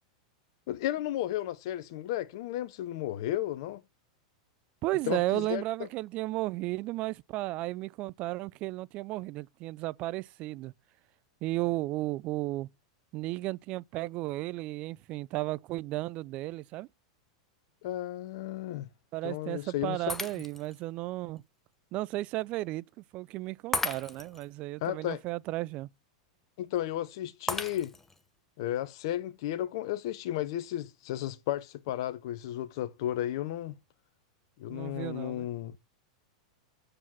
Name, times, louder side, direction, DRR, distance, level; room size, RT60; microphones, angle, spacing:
voice 1, 0.7-3.8 5.1-5.6 17.8-18.9 19.2-20.0 24.8-25.2 26.6-27.9 28.6-33.8 34.6-35.8, left 13 dB, 60° left, 0.7 m, -33 dB
voice 2, 4.8-10.7 11.4-12.7 13.1-16.9 19.1-21.4 21.9-22.8 23.1-25.9 34.7-35.5, right 18 dB, 45° right, 0.4 m, -34 dB
Shatter, 20.1-20.8 21.4-21.5 23.7-24.5 27.5-28.2, left 3 dB, 10° left, 1.0 m, -34 dB
7.7 x 4.8 x 5.7 m
hypercardioid pair, 105°, 3 cm